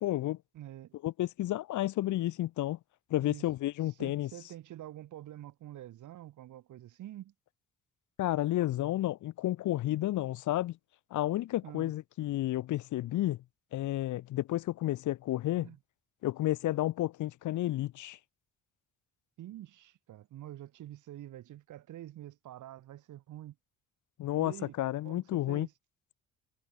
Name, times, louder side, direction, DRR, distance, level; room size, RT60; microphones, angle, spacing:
voice 1, 0.0-0.4 1.0-2.8 3.1-4.3 8.2-10.8 11.1-13.4 13.7-15.7 16.2-18.2 24.2-25.7, left 15 dB, 75° left, 1.1 m, -31 dB
voice 2, 0.5-1.0 3.2-3.5 4.0-7.3 11.6-11.9 15.6-15.8 19.4-23.6 24.4-24.8 25.0-25.7, right 13 dB, 80° right, 5.4 m, -47 dB
cardioid pair, 90°, 30 cm